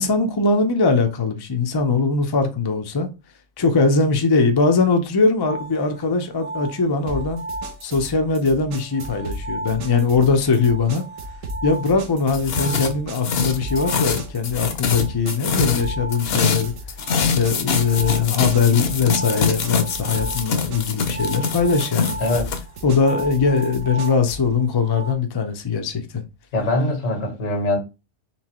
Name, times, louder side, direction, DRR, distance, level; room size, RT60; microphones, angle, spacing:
voice 1, 0.0-3.1 3.6-7.4 7.8-11.0 11.6-16.7 17.2-22.2 22.8-26.2, left 4 dB, 30° left, 0.4 m, -21 dB
sound 1, 5.4-8.3 8.6-25.1, right 2 dB, 50° right, 1.4 m, -36 dB
sound 2, 7.1-24.5, right 1 dB, 80° right, 1.3 m, -36 dB
sound 3, 12.3-22.6, left 5 dB, 55° left, 0.9 m, -24 dB
voice 2, 22.2-22.5 26.5-27.8, left 2 dB, 90° left, 1.7 m, -22 dB
4.4 x 3.4 x 3.0 m
omnidirectional pair, 1.3 m